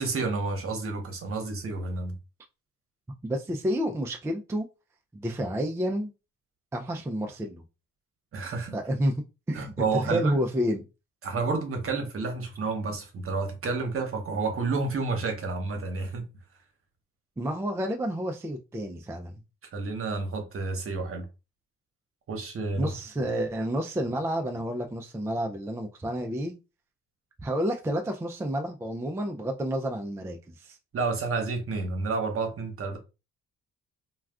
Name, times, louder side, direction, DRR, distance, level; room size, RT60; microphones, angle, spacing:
voice 1, 0.0-2.1 8.3-8.8 9.5-10.3 11.2-16.3 19.7-21.3 22.3-23.3 30.9-33.0, right 4 dB, 45° right, 1.0 m, -30 dB
voice 2, 3.2-4.7 5.1-6.1 6.7-7.6 8.7-9.1 9.5-10.8 17.4-19.3 22.7-26.5 27.4-30.8, equal, 10° right, 0.3 m, -30 dB
2.3 x 2.3 x 3.4 m
cardioid pair, 90°, 30 cm